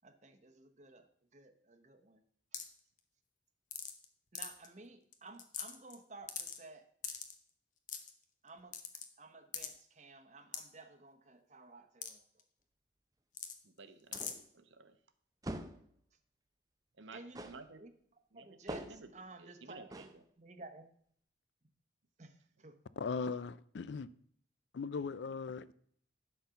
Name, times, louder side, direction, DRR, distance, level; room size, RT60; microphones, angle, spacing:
voice 1, 0.0-2.2 4.3-6.9 8.4-8.8 9.2-12.2 17.1-17.9 18.3-20.8 22.2-22.8, right 2 dB, 35° right, 1.0 m, -54 dB
sound 1, 2.5-2.8 3.7-4.0 4.4-4.7 5.1-5.2 5.4-5.9 6.3-6.6 7.0-7.3 7.9-8.1 8.7-9.1 9.5-9.7 10.5-10.6 12.0-12.1 12.4-12.5 13.3-13.6 14.1-14.3, left 8 dB, 40° left, 1.0 m, -41 dB
voice 2, 13.6-14.9 17.0-17.8 18.3-19.1 19.4-20.1, right 3 dB, 75° right, 0.9 m, -54 dB
sound 2, 14.1-14.5 15.4-15.9 17.3-17.7 18.7-19.1 19.9-20.2, right 1 dB, 20° right, 0.6 m, -44 dB
voice 3, 23.0-24.1 24.7-25.7, left 5 dB, 65° left, 0.4 m, -38 dB
11.5 x 4.4 x 6.9 m
head